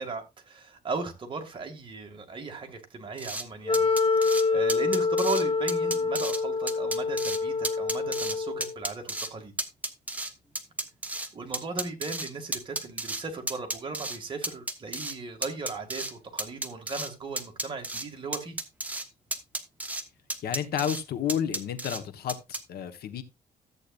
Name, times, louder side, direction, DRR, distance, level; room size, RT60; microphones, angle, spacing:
voice 1, 0.0-3.9 4.2-9.5 11.3-18.6, right 3 dB, 30° right, 2.1 m, -37 dB
sound 1, 3.2-3.4 3.7-4.4 4.7-5.4 5.7-6.4 6.7-7.4 7.6-8.4 8.6-9.3 9.6-11.3 11.5-13.2 13.5-14.2 14.4-15.2 15.4-16.1 16.4-17.1 17.4-18.0 18.3-19.1 19.3-20.0 20.3-21.0 21.3-22.0 22.3-22.6, right 2 dB, 10° right, 1.1 m, -32 dB
Wind instrument woodwind instrument, 3.7-8.8, left 4 dB, 35° left, 1.3 m, -26 dB
voice 2, 20.4-22.4 22.7-23.2, left 9 dB, 75° left, 1.2 m, -30 dB
13.5 x 8.4 x 2.5 m
cardioid pair, 140°, 16 cm